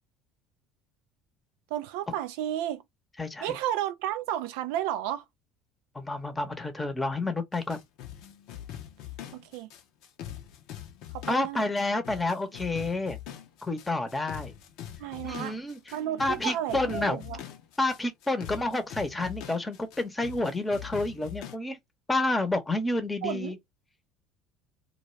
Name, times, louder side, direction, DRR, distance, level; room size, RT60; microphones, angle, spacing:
voice 1, 1.7-2.8 3.4-5.2 9.3-9.7 11.1-11.7 15.0-15.5 15.9-17.4 23.2-23.5, right 12 dB, 70° right, 0.3 m, -32 dB
voice 2, 3.2-3.6 5.9-7.8 11.3-13.2 13.6-14.6 15.2-15.8 16.2-17.2 17.8-21.8 22.1-23.6, left 2 dB, 15° left, 0.8 m, -29 dB
sound 1, 7.5-21.6, left 11 dB, 65° left, 0.5 m, -43 dB
2.3 x 2.3 x 3.0 m
hypercardioid pair, 70°, 0 cm